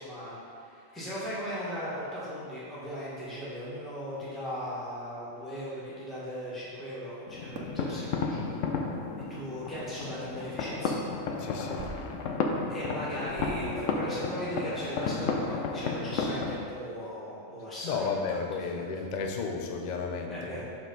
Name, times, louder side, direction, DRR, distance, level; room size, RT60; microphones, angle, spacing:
voice 1, 0.0-8.6 9.3-11.0 12.7-18.4 18.7-18.8 20.3-20.6, equal, ahead, -9 dB, 1.3 m, -38 dB
sound 1, 7.3-16.6, left 4 dB, 75° left, 1.0 m, -33 dB
sound 2, 7.5-7.8 9.0-9.1 10.4-10.6 11.8-12.3 12.6-12.7 13.2-13.8 14.4-14.5 14.8-14.9 15.2-15.5, right 4 dB, 75° right, 1.0 m, -43 dB
voice 2, 11.4-11.9 17.8-20.6, left 5 dB, 50° left, 3 dB, 0.5 m, -33 dB
6.5 x 4.9 x 3.8 m, 2.3 s
omnidirectional pair, 1.4 m